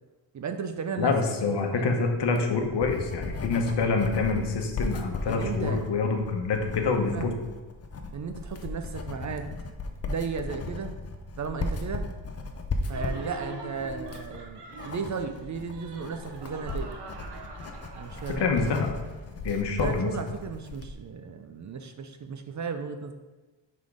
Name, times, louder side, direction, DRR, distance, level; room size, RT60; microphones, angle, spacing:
voice 1, 0.3-1.1 1.7-1.8 5.3-5.8 6.9-7.4 8.1-9.7 10.1-11.0 11.4-12.1 12.9-16.9 17.9-18.9 19.8-23.1, right 5 dB, 40° right, 7 dB, 0.5 m, -35 dB
voice 2, 1.0-7.3 18.4-18.9 19.4-20.1, left 4 dB, 60° left, 4 dB, 1.0 m, -26 dB
Writing, 2.2-21.0, left 3 dB, 35° left, 0.6 m, -36 dB
Laughter, 12.9-19.2, right 3 dB, 60° right, 1.0 m, -44 dB
5.9 x 3.7 x 4.9 m, 1.2 s
cardioid pair, 125°, 47 cm